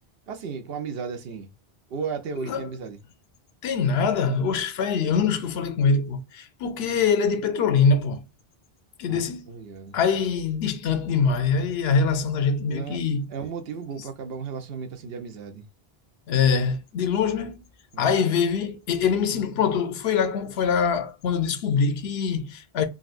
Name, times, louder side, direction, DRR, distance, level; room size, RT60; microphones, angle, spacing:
voice 1, 0.3-1.5 1.9-3.0 9.1-10.0 12.6-13.0 13.3-15.7 17.9-18.1, right 5 dB, 75° right, 0.9 m, -34 dB
voice 2, 3.6-8.2 9.0-9.5 9.9-13.3 16.3-17.6 18.0-22.9, left 5 dB, 90° left, 0.9 m, -23 dB
3.8 x 2.3 x 2.4 m
omnidirectional pair, 1.0 m